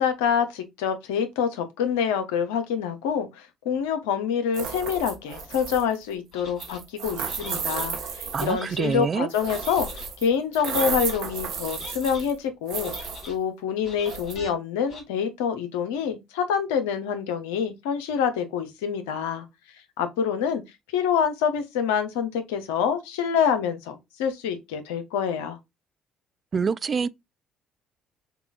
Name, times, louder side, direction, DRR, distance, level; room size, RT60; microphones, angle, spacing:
voice 1, 0.0-9.9 10.2-19.4 20.0-20.6 20.9-25.6, left 7 dB, 85° left, 0.7 m, -26 dB
sound 1, 4.5-6.0 6.6-8.7 9.3-10.3 10.5-12.4 12.7-13.3 14.0-14.3, right 6 dB, 75° right, 1.3 m, -33 dB
sound 2, 6.3-6.8 7.2-7.9 8.4-9.0 9.4-10.1 10.5-11.2 11.6-12.3 12.7-13.4 13.8-14.5 14.9-15.0, left 3 dB, 65° left, 2.9 m, -43 dB
voice 2, 8.3-9.3 26.5-27.1, right 5 dB, 40° right, 0.3 m, -26 dB
6.7 x 2.3 x 2.3 m
hypercardioid pair, 60°, 0 cm